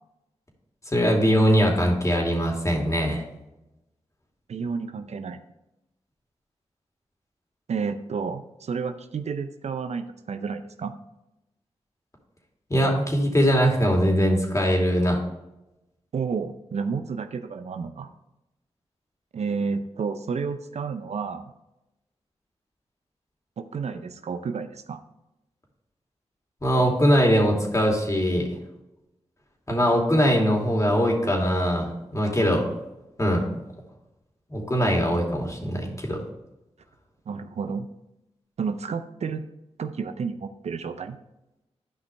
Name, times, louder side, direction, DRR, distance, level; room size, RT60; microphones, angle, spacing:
voice 1, 0.9-3.2 12.7-15.2 26.6-28.5 29.7-32.6 33.2-33.6 34.5-36.2, equal, 25° left, 0 dB, 2.6 m, -21 dB
voice 2, 4.5-5.4 7.7-10.9 16.1-18.1 19.3-21.5 23.6-25.0 37.3-37.9 38.6-39.4 39.8-41.2, right 5 dB, 75° right, 9 dB, 0.6 m, -31 dB
11.5 x 5.4 x 3.4 m, 0.93 s
cardioid pair, 45°, 11 cm